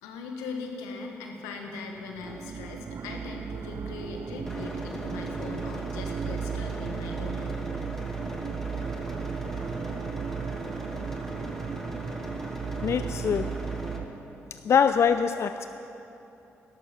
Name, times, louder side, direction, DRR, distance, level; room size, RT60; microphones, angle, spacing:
voice 1, 0.0-7.6, left 4 dB, 90° left, 2 dB, 1.3 m, -39 dB
sound 1, 2.1-14.1, right 7 dB, 50° right, 0.4 m, -35 dB
sound 2, 4.5-14.0, equal, 5° left, 1.9 m, -39 dB
voice 2, 12.8-13.6 14.6-15.7, left 7 dB, 55° left, 10 dB, 0.4 m, -23 dB
13.0 x 11.5 x 5.9 m, 3.0 s
hypercardioid pair, 50°, 6 cm